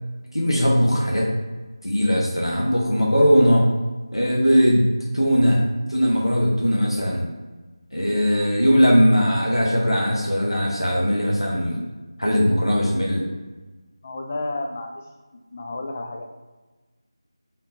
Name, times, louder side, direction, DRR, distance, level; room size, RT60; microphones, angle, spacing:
voice 1, 0.3-1.3 1.8-3.6 4.1-4.9 5.1-5.6 5.9-7.3 7.9-11.8 12.2-13.2, equal, 90° left, -3 dB, 0.9 m, -19 dB
voice 2, 14.0-15.0 15.3-16.2, left 2 dB, 20° left, 2 dB, 0.3 m, -31 dB
4.1 x 3.6 x 2.7 m, 1.2 s
figure-of-eight pair, 165°, 3 cm